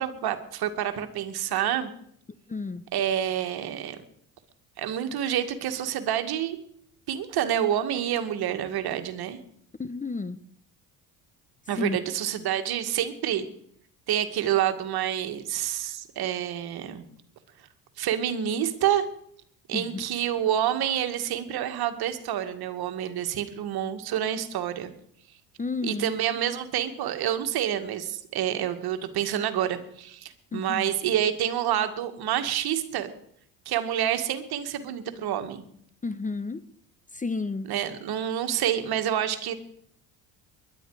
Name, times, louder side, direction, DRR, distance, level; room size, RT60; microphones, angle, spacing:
voice 1, 0.0-1.9 2.9-4.0 4.8-6.6 7.1-9.4 11.7-13.5 14.1-17.0 18.0-19.1 19.7-24.9 25.8-33.1 33.7-35.6 37.6-39.5, right 10 dB, 60° right, 8 dB, 2.1 m, -28 dB
voice 2, 2.5-2.8 9.8-10.4 11.8-12.0 19.7-19.8 25.6-26.1 30.5-30.9 36.0-36.6 37.1-37.7, left 3 dB, 20° left, 14 dB, 0.9 m, -31 dB
21.5 x 11.5 x 4.9 m, 0.66 s
hypercardioid pair, 70°, 43 cm